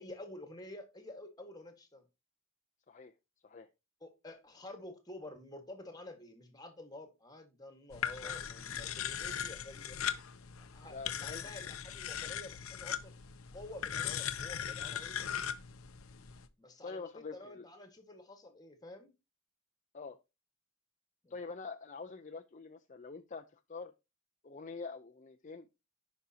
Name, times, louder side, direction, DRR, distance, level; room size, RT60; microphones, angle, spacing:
voice 1, 0.0-2.0 4.0-10.0 10.6-13.1 13.5-15.3 16.6-19.1 21.2-21.4, left 1 dB, 20° left, 1.6 m, -50 dB
sound 1, 7.9-16.5, left 8 dB, 80° left, 0.8 m, -39 dB
voice 2, 10.9-11.5 16.8-17.7 19.9-20.2 21.3-23.9 24.4-25.7, left 4 dB, 35° left, 0.6 m, -45 dB
15.0 x 5.3 x 2.8 m
head